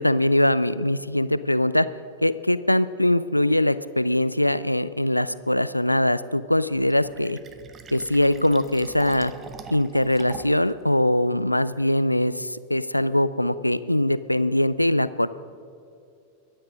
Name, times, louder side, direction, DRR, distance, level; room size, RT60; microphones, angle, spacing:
voice 1, 0.0-1.9 2.2-7.4 7.9-9.3 9.7-15.3, left 1 dB, 90° left, 15 dB, 0.4 m, -22 dB
Fill (with liquid), 6.7-10.7, right 6 dB, 25° right, 0.8 m, -43 dB
23.0 x 8.8 x 5.2 m, 2.4 s
figure-of-eight pair, 90°, 0 cm